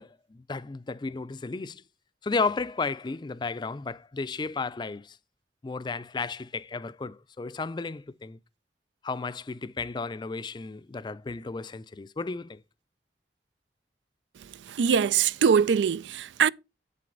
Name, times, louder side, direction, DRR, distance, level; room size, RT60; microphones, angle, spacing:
voice 1, 0.0-1.8 2.2-5.2 5.6-8.4 9.0-12.6, left 4 dB, 25° left, 0.4 m, -33 dB
voice 2, 14.4-16.5, right 7 dB, 90° right, 0.4 m, -23 dB
8.2 x 7.6 x 3.9 m
head